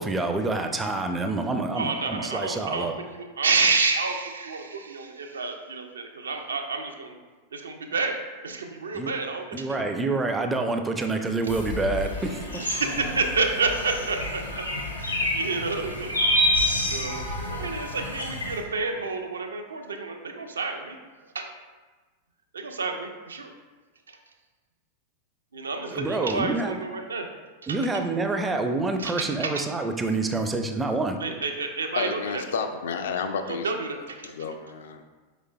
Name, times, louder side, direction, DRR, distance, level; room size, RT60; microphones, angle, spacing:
voice 1, 0.0-3.0 8.9-9.1 9.5-12.6 25.9-26.8 27.7-31.2, right 3 dB, 15° right, 5 dB, 0.4 m, -27 dB
voice 2, 1.8-7.1 7.5-8.2 8.4-9.8 12.6-14.4 15.0-16.1 16.4-17.2 17.5-21.0 21.3-21.5 22.5-23.5 25.5-27.3 27.6-28.0 29.0-29.6 31.2-32.4 33.5-34.3, right 4 dB, 70° right, 5 dB, 0.4 m, -29 dB
sound 1, 11.5-18.6, left 1 dB, 80° left, 0.8 m, -28 dB
voice 3, 32.0-35.0, left 5 dB, 60° left, 7 dB, 0.3 m, -31 dB
4.8 x 4.1 x 2.3 m, 1.3 s
figure-of-eight pair, 90°, 0 cm